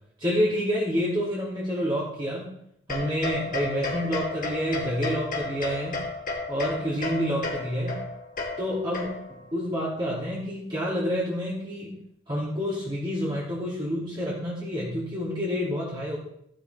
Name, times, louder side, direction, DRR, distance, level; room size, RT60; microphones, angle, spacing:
voice 1, 0.2-2.5 2.9-6.0 6.5-8.0 8.6-11.9 12.3-16.2, equal, 25° right, -7 dB, 2.7 m, -28 dB
sound 1, 2.9-9.5, left 3 dB, 45° left, 1.9 m, -33 dB
15.0 x 10.5 x 3.5 m, 0.73 s
head